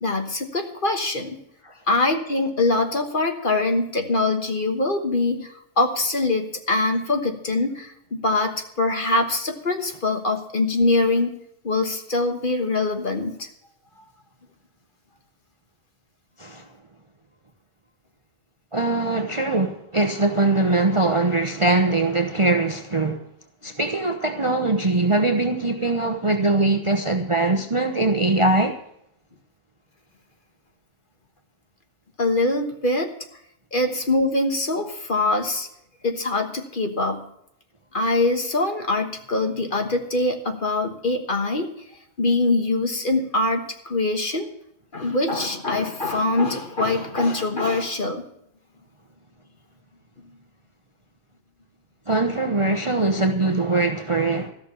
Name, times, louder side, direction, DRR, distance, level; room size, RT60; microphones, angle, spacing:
voice 1, 0.0-1.4 1.9-11.4 11.6-13.5 32.2-33.1 33.7-35.7 36.0-37.3 37.9-41.7 42.2-44.5 44.9-48.2, left 2 dB, 40° left, 1.5 m, -23 dB
voice 2, 18.7-23.2 23.6-28.7 52.1-54.5, right 2 dB, 25° right, 0.8 m, -22 dB
14.0 x 6.5 x 8.7 m
omnidirectional pair, 1.4 m